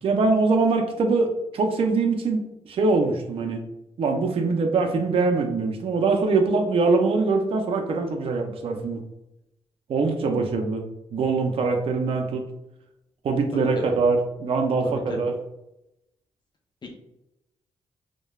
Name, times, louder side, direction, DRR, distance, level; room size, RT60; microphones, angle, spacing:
voice 1, 0.0-2.4 2.7-3.6 4.0-9.0 9.9-10.8 11.1-12.5 13.2-15.3, right 3 dB, 55° right, 4 dB, 0.4 m, -23 dB
voice 2, 13.5-14.0 14.8-15.2 16.8-16.9, left 2 dB, 40° left, 1 dB, 0.5 m, -35 dB
3.0 x 2.1 x 2.3 m, 0.87 s
cardioid pair, 85°, 11 cm